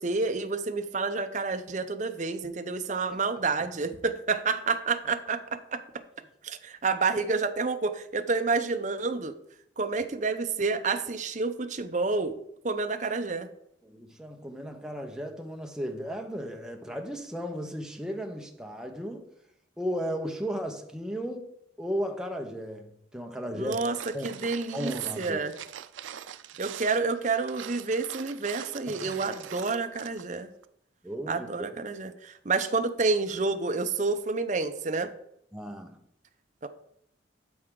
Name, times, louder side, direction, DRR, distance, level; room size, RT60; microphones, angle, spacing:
voice 1, 0.0-5.4 5.7-5.8 6.4-9.3 9.8-12.4 12.6-13.5 23.5-24.0 24.2-25.5 26.6-30.5 31.3-35.1 36.6-36.7, right 4 dB, 40° right, 0.7 m, -29 dB
voice 2, 13.8-19.3 19.8-21.5 21.8-23.8 24.1-24.3 24.7-25.4 28.9-29.1 31.0-31.7 35.5-36.0, equal, 5° right, 0.8 m, -35 dB
sound 1, 23.7-30.3 30.6-30.7, right 9 dB, 85° right, 0.4 m, -43 dB
12.0 x 4.7 x 3.8 m
head